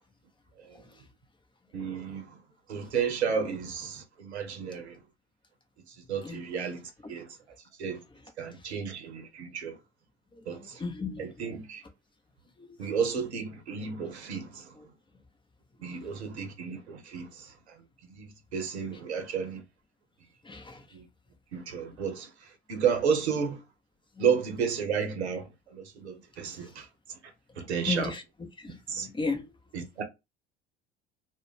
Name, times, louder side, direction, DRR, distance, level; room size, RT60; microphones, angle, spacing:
voice 1, 1.7-2.4 2.7-5.0 6.1-7.3 7.8-8.0 8.4-9.8 10.5-10.8 11.2-11.8 12.8-14.7 15.8-17.5 18.2-19.6 20.9-21.1 21.5-22.3 22.7-23.6 24.2-26.9 27.6-28.1 28.9-29.1 29.7-30.0, right 6 dB, 85° right, 0.7 m, -32 dB
voice 2, 10.6-11.5 12.6-12.8 16.0-16.1 20.5-20.8 24.2-24.3 27.9-28.2 28.6-29.4, left 3 dB, 15° left, 0.6 m, -35 dB
2.4 x 2.1 x 3.2 m
hypercardioid pair, 60°, 32 cm